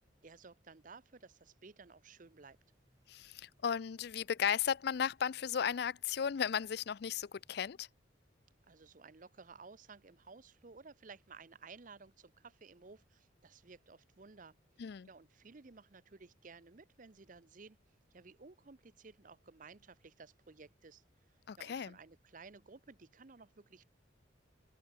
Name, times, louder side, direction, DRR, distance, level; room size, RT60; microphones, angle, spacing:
voice 1, 0.0-2.6 8.7-17.8 18.1-21.0 21.6-23.8, right 4 dB, 45° right, 0.7 m, -56 dB
sound 1, 2.2-7.7, equal, 20° right, 7.2 m, -76 dB
voice 2, 3.1-7.9 14.8-15.1 21.5-21.9, left 7 dB, 55° left, 0.4 m, -35 dB
open air
head